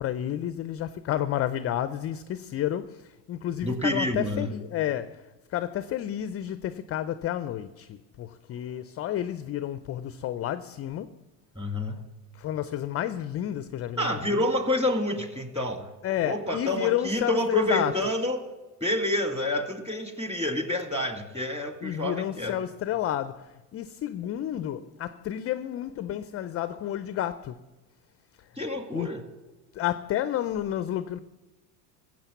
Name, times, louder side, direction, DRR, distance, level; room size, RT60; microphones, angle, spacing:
voice 1, 0.0-11.1 12.3-14.5 16.0-18.0 21.8-27.6 28.9-29.1 29.7-31.2, left 11 dB, 30° left, 0.4 m, -31 dB
voice 2, 3.6-4.5 11.5-12.0 14.0-15.9 16.2-18.5 18.8-22.6 28.6-29.2, left 1 dB, 10° right, 1.8 m, -28 dB
15.0 x 7.6 x 7.1 m
hypercardioid pair, 80°, 50 cm